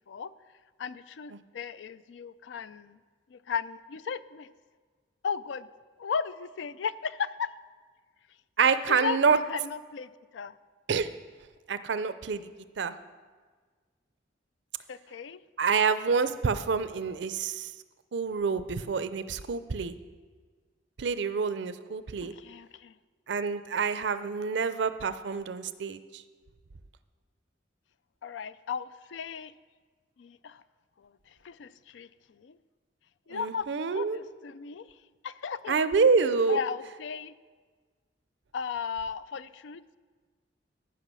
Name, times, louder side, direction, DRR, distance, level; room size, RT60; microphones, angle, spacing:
voice 1, 0.8-3.0 3.3-4.5 5.2-5.7 6.0-7.5 8.9-10.6 14.9-15.4 22.2-22.9 28.2-29.5 30.2-30.6 31.0-32.6 33.3-33.7 33.9-35.0 35.2-35.8 36.5-37.3 38.5-40.0, left 6 dB, 90° left, 15 dB, 0.4 m, -36 dB
voice 2, 8.6-9.4 10.9-11.1 11.7-12.4 12.8-12.9 15.6-17.7 18.1-20.0 21.0-22.3 23.3-26.2 33.3-34.2 35.7-36.6, right 5 dB, 70° right, 13 dB, 0.5 m, -27 dB
14.5 x 5.7 x 6.2 m, 1.5 s
head